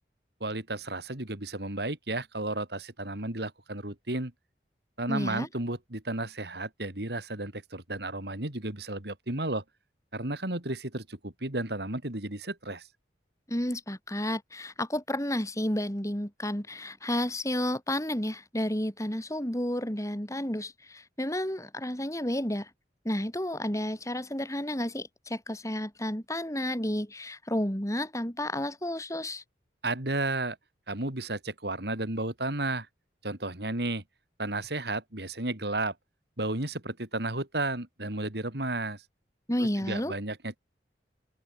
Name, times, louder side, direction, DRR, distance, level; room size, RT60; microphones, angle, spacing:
voice 1, 0.4-4.3 5.0-9.6 10.1-12.9 29.8-30.6 30.9-32.9 33.2-34.0 34.4-35.9 36.4-39.0 39.6-40.6, right 2 dB, 60° right, 3.1 m, -33 dB
voice 2, 5.1-5.5 13.5-22.7 23.0-29.4 39.5-40.1, left 1 dB, 15° left, 4.2 m, -31 dB
open air
head